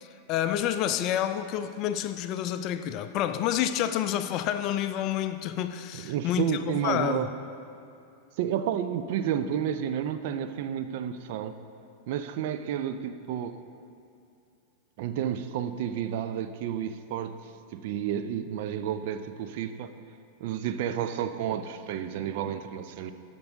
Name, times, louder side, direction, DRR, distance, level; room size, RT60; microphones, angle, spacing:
voice 1, 0.3-7.3, left 11 dB, 40° left, 0.4 m, -29 dB
voice 2, 5.9-7.3 8.4-11.5 12.1-13.6 15.0-17.4 17.7-19.9 20.4-23.1, right 9 dB, 50° right, 0.4 m, -31 dB
14.5 x 5.3 x 3.5 m
figure-of-eight pair, 90°, 0 cm